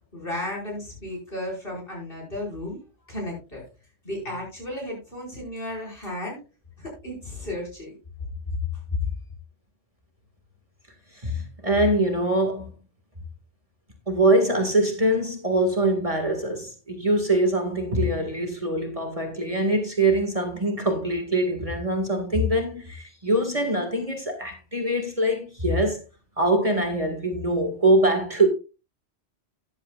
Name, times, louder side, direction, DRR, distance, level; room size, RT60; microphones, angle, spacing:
voice 1, 0.1-2.8 3.1-3.6 4.0-6.4 6.8-7.9 8.2-8.3 8.9-9.0, left 1 dB, 55° left, 5.6 m, -33 dB
voice 2, 11.2-12.7 14.1-26.0 26.4-28.5, right 1 dB, 30° right, 2.0 m, -23 dB
13.5 x 10.5 x 2.4 m
omnidirectional pair, 1.1 m